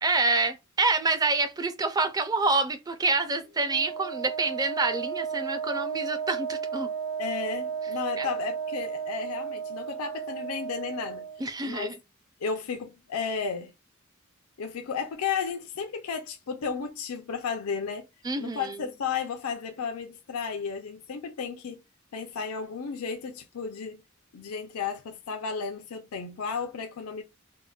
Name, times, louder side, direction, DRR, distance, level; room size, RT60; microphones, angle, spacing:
voice 1, 0.0-6.9 8.2-8.3 11.4-11.9 18.2-18.8, right 3 dB, 15° right, 0.4 m, -27 dB
Wind instrument woodwind instrument, 3.6-11.4, right 7 dB, 60° right, 1.6 m, -34 dB
voice 2, 7.2-11.2 11.7-11.9 12.4-13.7 14.6-18.1 18.4-21.8 22.1-24.0 24.3-27.2, left 6 dB, 85° left, 0.5 m, -33 dB
3.7 x 2.1 x 2.3 m
head